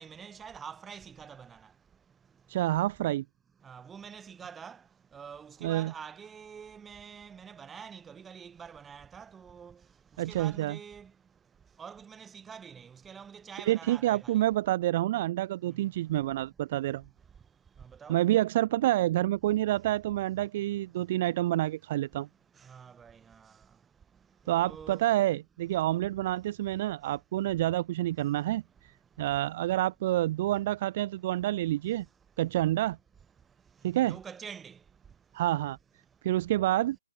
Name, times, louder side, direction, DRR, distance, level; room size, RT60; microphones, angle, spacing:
voice 1, 0.0-1.6 3.6-4.8 5.1-9.8 10.3-11.1 11.8-14.4 15.7-15.8 17.8-18.2 22.6-23.5 24.5-25.0 34.0-34.8, right 7 dB, 10° right, 7.1 m, -46 dB
voice 2, 2.5-3.2 5.6-5.9 10.2-10.8 13.6-17.0 18.1-22.3 24.5-32.1 32.4-33.0 33.8-34.2 35.3-35.8 36.2-37.0, right 15 dB, 30° right, 2.5 m, -28 dB
figure-of-eight pair, 150°, 0 cm